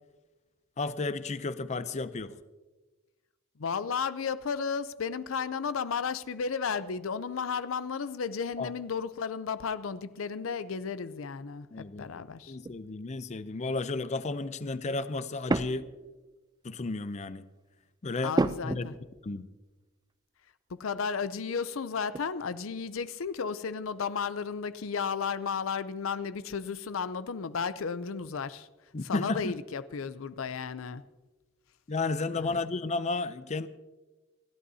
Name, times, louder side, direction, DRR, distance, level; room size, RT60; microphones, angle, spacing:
voice 1, 0.8-2.3 8.6-8.7 11.7-15.9 16.6-17.5 18.0-18.4 18.6-19.0 19.2-19.5 28.9-29.5 31.9-33.7, left 3 dB, 35° left, 0.5 m, -33 dB
voice 2, 3.6-12.6 18.2-18.9 20.7-28.7 29.0-31.0 32.4-32.6, left 6 dB, 85° left, 0.5 m, -33 dB
sound 1, 12.5-12.9 15.5-16.2 16.7-17.0 18.3-19.3 19.7-19.8 22.1-22.5 22.7-23.4, right 2 dB, 20° right, 0.4 m, -32 dB
29.0 x 11.5 x 2.8 m
head